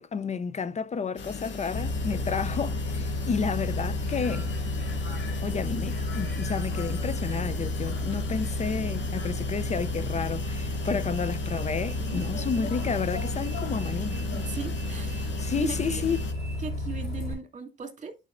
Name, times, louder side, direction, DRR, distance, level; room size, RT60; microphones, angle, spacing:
voice 1, 0.0-4.5 5.4-14.2 15.3-16.2, left 6 dB, 35° left, 0.5 m, -31 dB
sound 1, 1.2-16.3, left 4 dB, 65° left, 2.0 m, -39 dB
Bus, 1.7-17.3, left 1 dB, 85° left, 3.8 m, -31 dB
voice 2, 14.5-16.0 16.6-18.2, right 5 dB, 35° right, 2.2 m, -37 dB
10.5 x 5.3 x 2.5 m
cardioid pair, 90°, 20 cm